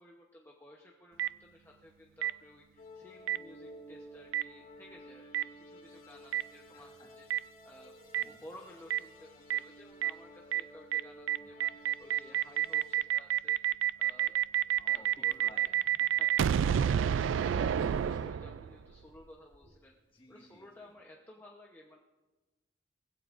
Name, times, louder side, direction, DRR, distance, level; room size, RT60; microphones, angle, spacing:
voice 1, 0.0-7.9 8.2-14.4 14.6-15.9 16.1-19.9 20.3-22.0, left 1 dB, 10° left, -1 dB, 0.9 m, -55 dB
Boom, 1.2-1.3 2.2-2.3 3.3-3.4 4.3-4.4 5.3-5.4 6.3-6.4 7.3-7.4 8.1-8.2 8.9-9.0 9.5-9.6 10.0-10.1 10.5-10.6 10.9-11.0 11.3-18.8, right 10 dB, 80° right, 0.3 m, -28 dB
sound 1, 2.8-13.0, equal, 45° left, 2.7 m, -53 dB
voice 2, 6.7-7.1 8.2-8.5 11.4-11.7 14.8-16.7 20.1-20.9, left 1 dB, 30° left, -2 dB, 2.0 m, -57 dB
Slam, 15.3-15.4 16.7-20.2 20.5-20.7, equal, 65° right, 3.5 m, -53 dB
20.0 x 15.0 x 2.6 m, 1.2 s
head